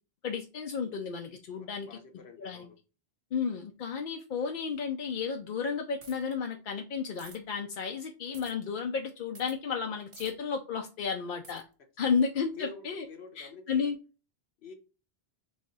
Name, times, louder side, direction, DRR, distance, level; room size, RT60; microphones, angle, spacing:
voice 1, 0.2-2.0 2.4-2.6 3.3-11.6 12.0-13.1 13.4-14.0, left 6 dB, 60° left, 3 dB, 0.6 m, -32 dB
voice 2, 1.6-2.8 12.0-12.1 12.5-13.9 14.6-14.7, left 4 dB, 85° left, 5 dB, 1.2 m, -48 dB
sound 1, 6.0-6.3 7.2-7.4 8.3-8.5 9.3-9.6 10.1-10.3 11.4-11.6, right 3 dB, 35° right, 0.9 m, -50 dB
3.5 x 3.2 x 3.9 m, 0.33 s
omnidirectional pair, 1.0 m